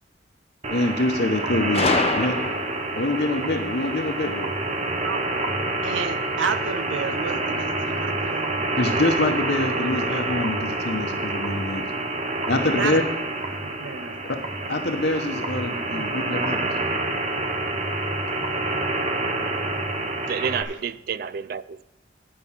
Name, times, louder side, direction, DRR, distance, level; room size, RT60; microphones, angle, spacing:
sound 1, 0.6-20.6, right 2 dB, 35° right, 0.9 m, -27 dB
voice 1, 0.7-2.4 2.9-4.5 8.8-11.9 12.5-13.0 14.7-16.7, left 2 dB, 55° left, 0.8 m, -25 dB
Gunshot gunfire, 1.7-3.0, left 4 dB, 30° left, 0.3 m, -25 dB
voice 2, 5.8-8.5 12.8-13.0 13.5-14.2 15.9-16.1, right 5 dB, 75° right, 0.7 m, -31 dB
voice 3, 20.2-21.8, right 6 dB, 50° right, 0.3 m, -29 dB
9.9 x 5.6 x 7.1 m
head